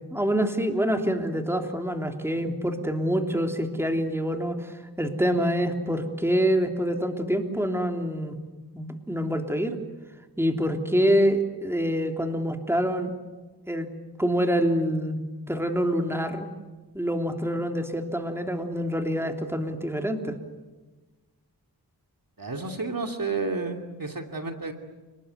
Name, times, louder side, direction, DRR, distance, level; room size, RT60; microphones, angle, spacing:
voice 1, 0.1-8.4 8.7-9.8 10.4-13.1 13.7-13.9 14.2-16.5 16.9-20.3, equal, 5° right, 4 dB, 3.2 m, -26 dB
voice 2, 22.4-24.7, right 3 dB, 55° right, 4 dB, 2.7 m, -31 dB
29.5 x 20.0 x 9.5 m, 1.3 s
wide cardioid pair, 50°, 40 cm